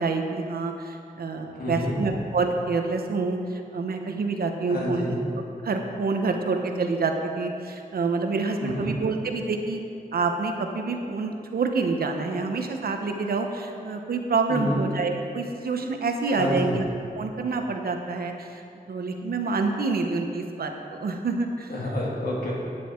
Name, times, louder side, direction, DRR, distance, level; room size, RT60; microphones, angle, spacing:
voice 1, 0.0-5.2 5.6-9.8 10.1-16.8 17.1-18.6 18.9-21.7, right 4 dB, 80° right, 4 dB, 1.0 m, -27 dB
voice 2, 1.5-2.0 4.7-5.2 8.6-8.9 14.5-14.8 16.3-16.8 21.7-22.5, left 1 dB, 80° left, -4 dB, 2.5 m, -28 dB
10.5 x 9.2 x 4.5 m, 2.5 s
wide cardioid pair, 95°, 15 cm